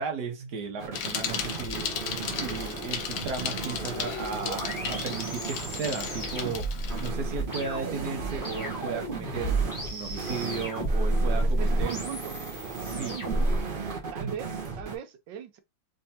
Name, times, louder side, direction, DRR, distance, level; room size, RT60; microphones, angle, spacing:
voice 1, 0.0-9.6 9.9-12.0 12.8-13.2 14.2-14.3, right 5 dB, 65° right, 1.5 m, -35 dB
sound 1, 0.8-15.0, right 4 dB, 40° right, 0.8 m, -36 dB
Bicycle, 0.9-7.1, left 8 dB, 85° left, 1.4 m, -35 dB
sound 2, 3.9-13.6, right 1 dB, 10° left, 1.2 m, -31 dB
voice 2, 11.4-12.4 12.8-13.7 14.1-15.6, right 9 dB, 80° right, 1.4 m, -40 dB
3.5 x 3.3 x 2.8 m
omnidirectional pair, 2.0 m